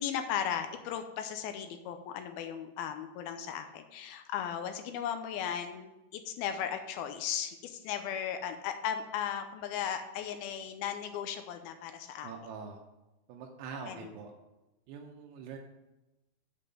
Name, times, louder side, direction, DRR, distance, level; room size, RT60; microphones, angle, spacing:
voice 1, 0.0-12.3 13.9-14.1, left 9 dB, 80° left, 7 dB, 2.4 m, -36 dB
voice 2, 12.2-12.8 13.3-14.3 14.9-15.6, right 5 dB, 85° right, 1 dB, 2.9 m, -44 dB
7.6 x 5.4 x 7.5 m, 1.0 s
omnidirectional pair, 4.7 m